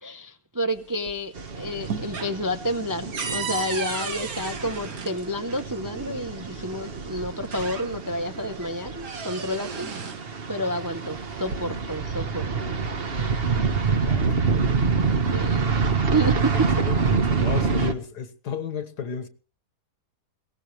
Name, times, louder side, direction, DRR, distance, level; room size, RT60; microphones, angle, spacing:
voice 1, 0.0-9.9 10.5-12.7 15.3-15.7 16.1-16.7, equal, 20° right, 0.6 m, -29 dB
sound 1, 0.7-1.4 1.7-5.7 6.8-6.9 7.3-8.2 8.6-10.3 11.2-12.0, right 5 dB, 60° right, 1.9 m, -35 dB
sound 2, 1.4-17.9, right 5 dB, 40° right, 1.3 m, -27 dB
voice 2, 13.9-14.4 16.7-17.0 17.3-19.3, left 7 dB, 75° left, 2.0 m, -33 dB
22.0 x 18.0 x 3.2 m
omnidirectional pair, 1.8 m